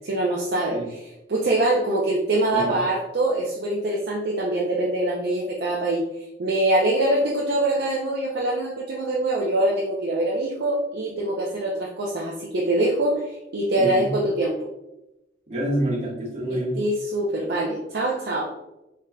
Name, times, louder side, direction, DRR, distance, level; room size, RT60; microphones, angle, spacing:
voice 1, 0.0-0.8 1.3-14.6 16.8-18.5, right 1 dB, 55° right, -3 dB, 0.5 m, -24 dB
voice 2, 13.8-14.1 15.5-16.8, right 1 dB, 35° right, -6 dB, 1.4 m, -27 dB
4.3 x 3.7 x 2.3 m, 0.92 s
head